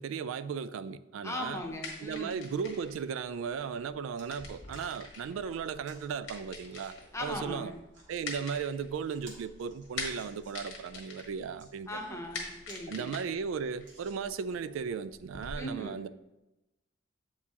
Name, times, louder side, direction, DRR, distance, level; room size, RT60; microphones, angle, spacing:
voice 1, 0.0-1.6 2.0-6.9 7.2-7.7 8.1-12.0 12.9-16.1, right 6 dB, 90° right, 0.3 m, -36 dB
voice 2, 1.2-2.4 7.1-7.8 11.9-13.1 15.6-16.0, left 1 dB, 15° left, 0.7 m, -39 dB
sound 1, 1.5-15.5, left 3 dB, 75° left, 1.4 m, -46 dB
sound 2, 4.1-4.3 4.7-4.9 5.8-6.1 6.8-7.0 7.7-8.2 8.7-8.8 9.1-10.8 11.4-11.7 12.3-12.4 12.7-12.8 13.2-13.3 13.8-14.5 15.2-15.3, right 2 dB, 60° right, 1.6 m, -56 dB
8.2 x 4.7 x 2.8 m
head